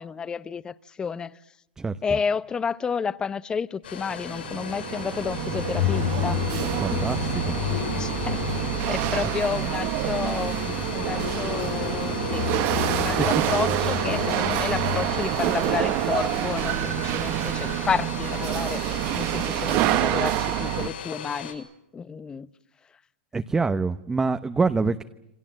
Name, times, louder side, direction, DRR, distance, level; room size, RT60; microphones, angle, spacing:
voice 1, 0.0-1.4 2.0-6.5 6.9-7.0 7.9-8.4 8.9-18.8 19.1-21.7 21.9-22.5, left 6 dB, 15° left, 0.9 m, -31 dB
voice 2, 1.8-2.2 6.8-7.6 9.2-9.3 13.0-13.4 23.3-25.0, right 4 dB, 10° right, 1.0 m, -26 dB
Domestic sounds home sounds, 3.8-21.5, left 8 dB, 85° left, 6.6 m, -37 dB
Chatter / Hiss / Rattle, 4.0-20.9, right 16 dB, 40° right, 1.2 m, -27 dB
sound 1, 5.2-17.2, left 12 dB, 65° left, 2.4 m, -32 dB
28.0 x 25.0 x 7.6 m
hypercardioid pair, 135°, 5 cm